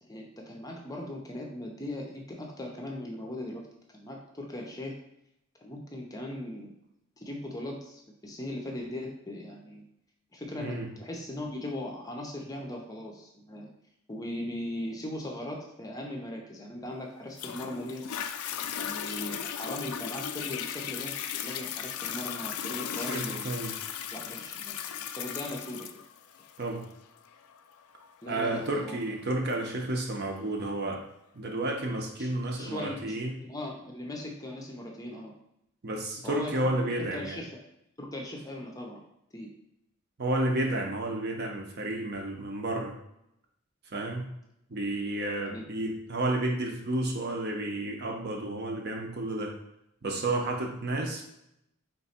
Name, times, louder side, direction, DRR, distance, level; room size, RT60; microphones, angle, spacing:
voice 1, 0.0-3.7 3.9-4.9 5.6-6.7 7.2-9.9 10.3-13.7 14.1-18.1 18.8-23.6 24.1-25.9 28.2-29.0 32.2-35.3 36.2-36.5 36.8-37.6 38.0-39.0 39.3-39.5 45.4-45.7, left 1 dB, 15° left, 1 dB, 0.6 m, -39 dB
Toilet flush, 17.4-30.4 31.0-31.1, left 9 dB, 80° left, 0.3 m, -37 dB
voice 2, 23.1-23.7 26.6-26.9 28.3-31.1 31.3-33.4 35.8-37.4 40.2-43.0 43.9-44.3 44.7-49.5 50.0-51.2, right 1 dB, 50° right, 1 dB, 0.7 m, -31 dB
3.5 x 3.0 x 4.3 m, 0.79 s
head